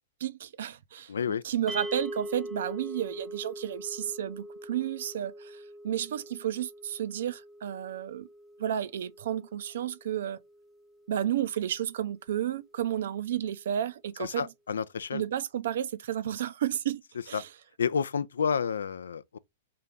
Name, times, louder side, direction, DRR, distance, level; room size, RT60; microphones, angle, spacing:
voice 1, 0.2-1.1 1.4-8.3 8.6-10.4 11.1-14.5 15.1-17.0 17.3-17.5, right 10 dB, 70° right, 0.4 m, -32 dB
voice 2, 1.1-1.4 14.2-15.2 17.3-17.4 17.8-19.4, left 6 dB, 85° left, 0.3 m, -30 dB
sound 1, 1.7-12.0, right 1 dB, ahead, 0.4 m, -43 dB
3.6 x 2.8 x 3.5 m
hypercardioid pair, 120°, 0 cm